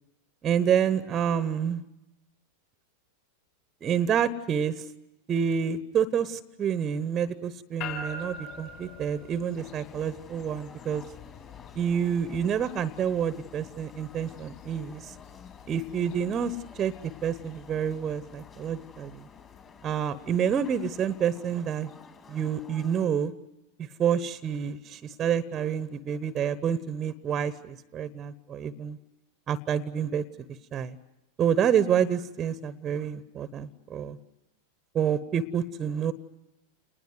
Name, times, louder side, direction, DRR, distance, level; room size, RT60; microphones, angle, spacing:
voice 1, 0.4-1.8 3.8-4.8 5.3-11.0 11.7-15.1 15.7-16.9 17.2-19.3 19.8-21.9 22.3-23.3 24.0-29.0 29.5-30.2 30.7-31.0 31.4-34.2 34.9-36.1, right 8 dB, 25° right, 15 dB, 1.1 m, -28 dB
sound 1, 7.8-22.1, left 4 dB, 45° left, 5.6 m, -46 dB
sound 2, 9.6-23.1, left 5 dB, 20° left, 2.5 m, -52 dB
29.0 x 20.5 x 9.4 m, 0.95 s
figure-of-eight pair, 90°, 0 cm